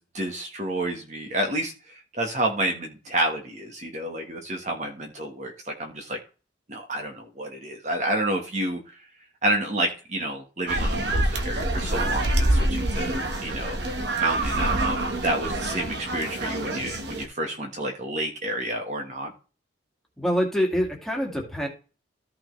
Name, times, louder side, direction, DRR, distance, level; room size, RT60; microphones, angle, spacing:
voice 1, 0.0-6.2 6.7-9.0 9.4-13.8 14.2-19.3, right 1 dB, 40° right, 2 dB, 1.5 m, -29 dB
sound 1, 10.7-17.3, right 1 dB, 65° right, 1.4 m, -26 dB
voice 2, 20.2-21.7, equal, ahead, -1 dB, 2.1 m, -25 dB
14.0 x 5.8 x 3.3 m, 0.34 s
head